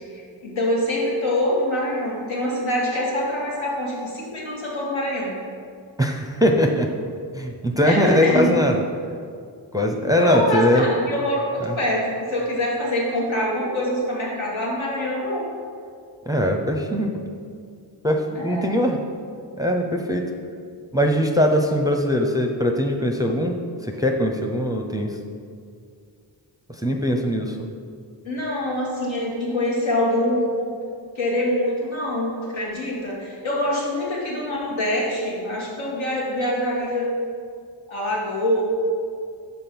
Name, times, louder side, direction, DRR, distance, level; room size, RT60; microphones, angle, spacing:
voice 1, 0.1-5.4 7.8-8.5 10.1-15.5 18.3-18.7 28.2-30.7 31.1-37.1 37.9-38.6, left 1 dB, 80° left, -4 dB, 1.6 m, -25 dB
voice 2, 6.0-6.9 7.3-8.8 9.7-10.8 11.6-11.8 16.3-17.1 18.0-19.0 19.6-20.3 20.9-23.6 23.9-25.2 26.8-27.7, equal, 10° right, 2 dB, 0.6 m, -21 dB
5.3 x 4.1 x 6.0 m, 2.2 s
cardioid pair, 45°, 46 cm